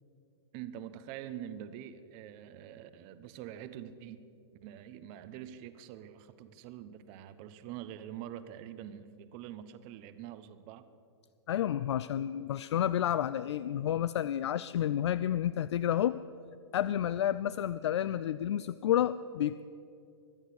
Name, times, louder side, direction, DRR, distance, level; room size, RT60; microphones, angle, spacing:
voice 1, 0.5-4.2 4.6-10.9, right 10 dB, 40° right, 12 dB, 1.0 m, -45 dB
voice 2, 11.5-16.2 16.7-19.6, left 11 dB, 75° left, 15 dB, 0.4 m, -30 dB
23.0 x 8.1 x 6.6 m, 2.6 s
hypercardioid pair, 125°, 15 cm